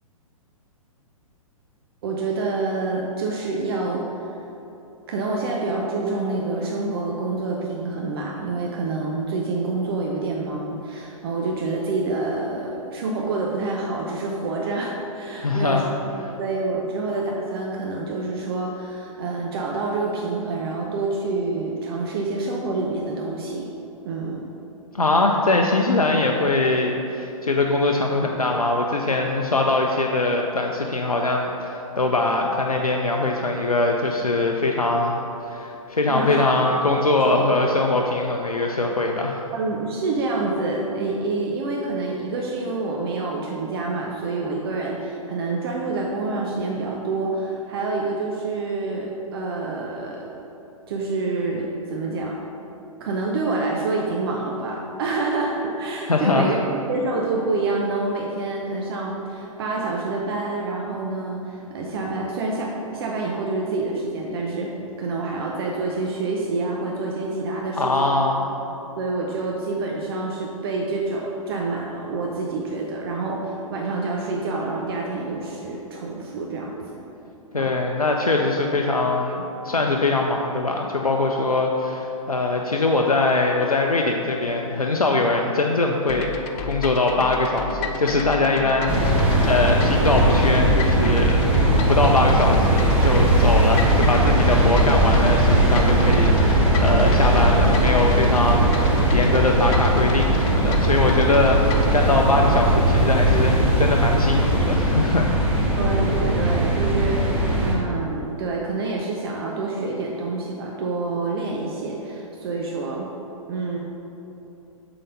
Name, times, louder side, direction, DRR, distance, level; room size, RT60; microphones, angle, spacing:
voice 1, 2.0-4.2 5.1-23.7 24.0-24.4 36.1-36.5 37.2-37.5 39.5-50.4 50.9-52.3 53.0-68.1 68.7-76.9 77.6-77.7 105.7-113.1 113.5-113.8, right 3 dB, 40° right, -1 dB, 0.7 m, -27 dB
voice 2, 15.3-15.8 24.9-35.2 35.5-39.4 56.1-56.5 67.8-68.4 77.5-86.3 86.6-91.4 91.9-105.7, left 2 dB, 90° left, 1 dB, 0.5 m, -22 dB
sound 1, 86.1-102.0, left 5 dB, 25° left, 0.4 m, -31 dB
sound 2, 88.9-107.7, right 1 dB, 5° right, 1.1 m, -19 dB
7.4 x 4.0 x 5.1 m, 3.0 s
figure-of-eight pair, 115°, 18 cm